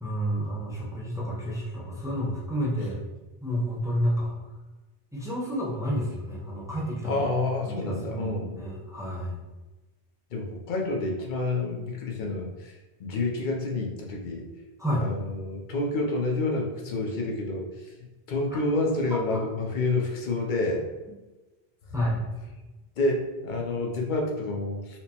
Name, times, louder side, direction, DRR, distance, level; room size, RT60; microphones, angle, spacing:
voice 1, 0.0-3.0 3.4-4.3 5.1-7.3 7.6-8.3 8.5-9.4 14.8-15.0 18.5-18.6 21.9-22.2, equal, 5° right, -6 dB, 0.7 m, -30 dB
voice 2, 7.0-8.6 10.3-12.7 13.0-14.4 15.0-17.9 18.3-20.8 23.0-25.0, left 2 dB, 55° left, 0 dB, 0.7 m, -28 dB
4.3 x 2.1 x 2.8 m, 1.1 s
omnidirectional pair, 1.0 m